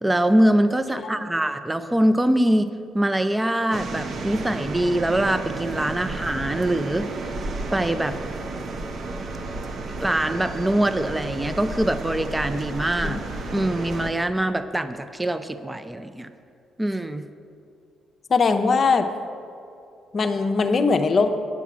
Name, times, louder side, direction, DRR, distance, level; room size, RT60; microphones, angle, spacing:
voice 1, 0.0-2.7 2.9-7.1 7.7-8.2 10.0-13.2 13.5-16.3 16.8-17.3, right 1 dB, 10° right, 11 dB, 0.5 m, -23 dB
sound 1, 3.7-14.1, right 3 dB, 55° right, 0.8 m, -32 dB
voice 2, 18.3-19.1 20.1-21.4, left 4 dB, 45° left, 7 dB, 0.7 m, -21 dB
9.3 x 7.1 x 6.0 m, 2.6 s
cardioid pair, 90°, 0 cm